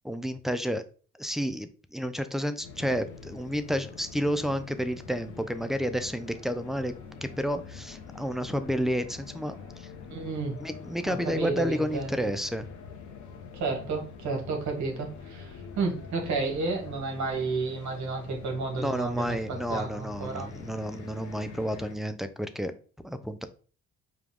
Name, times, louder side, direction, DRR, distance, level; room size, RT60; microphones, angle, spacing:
voice 1, 0.0-0.8 1.2-6.9 7.2-9.9 10.6-12.7 18.8-22.7 23.0-23.5, equal, ahead, 9 dB, 0.4 m, -31 dB
sound 1, 2.6-21.9, left 5 dB, 75° left, 0.9 m, -45 dB
voice 2, 10.1-10.6 11.0-12.3 13.5-20.5, right 4 dB, 70° right, 2 dB, 1.4 m, -32 dB
4.9 x 2.3 x 3.6 m, 0.39 s
cardioid pair, 90°, 30 cm